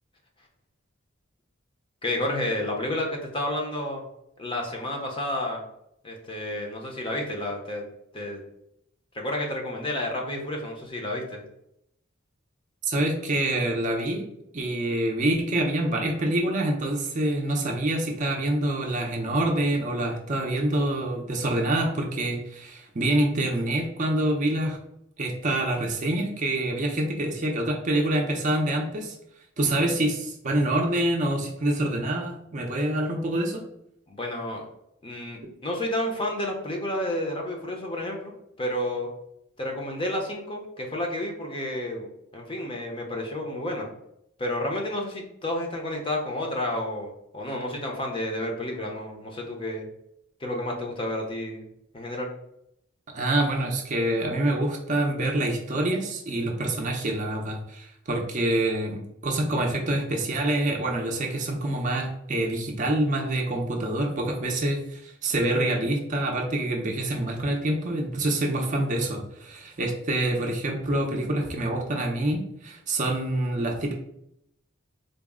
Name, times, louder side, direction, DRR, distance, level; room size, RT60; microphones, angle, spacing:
voice 1, 2.0-4.0 4.4-5.6 6.0-7.8 8.1-8.4 9.1-11.4 34.1-34.6 35.0-38.3 38.6-39.1 39.6-43.9 44.4-49.8 50.4-51.6 51.9-52.3, left 1 dB, 25° left, 0 dB, 0.6 m, -30 dB
voice 2, 12.8-14.2 14.5-24.8 25.2-29.1 29.6-33.6 53.1-73.9, right 1 dB, 35° right, 1 dB, 0.5 m, -26 dB
4.0 x 2.0 x 3.5 m, 0.77 s
head